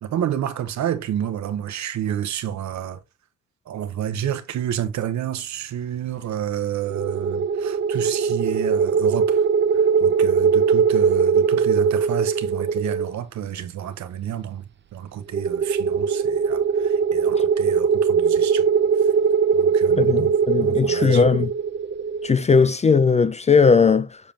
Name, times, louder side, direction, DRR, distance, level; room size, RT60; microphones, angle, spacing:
voice 1, 0.0-3.0 3.7-9.5 9.8-14.6 14.9-18.6 19.5-21.2, right 10 dB, 65° right, 1.0 m, -30 dB
sound 1, 6.9-13.1 15.3-22.4, right 6 dB, 40° right, 0.6 m, -20 dB
voice 2, 20.0-21.5 22.2-24.2, left 5 dB, 25° left, 0.4 m, -18 dB
6.8 x 5.2 x 2.8 m
cardioid pair, 90°, 30 cm